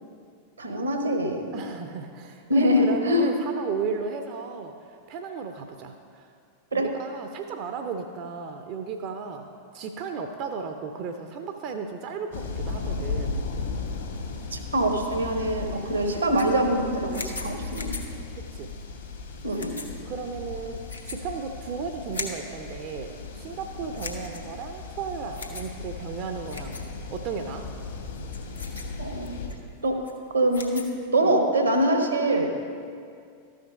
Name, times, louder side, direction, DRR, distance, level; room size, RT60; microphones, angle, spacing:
voice 1, 0.6-1.6 2.5-3.3 6.7-6.9 14.5-18.0 19.4-19.8 29.0-29.4 29.8-30.0 30.3-32.5, right 1 dB, 80° right, 4 dB, 1.1 m, -24 dB
voice 2, 1.5-6.3 6.7-9.5 9.7-13.4 15.8-16.0 18.5-18.7 20.1-26.8 27.1-27.7 31.2-31.3, right 5 dB, 40° right, 6 dB, 0.5 m, -35 dB
sound 1, 12.3-29.5, left 4 dB, 65° left, 1.4 m, -36 dB
sound 2, 16.0-31.1, left 3 dB, 80° left, 1.1 m, -42 dB
13.0 x 5.1 x 5.1 m, 2.3 s
figure-of-eight pair, 90°, 0 cm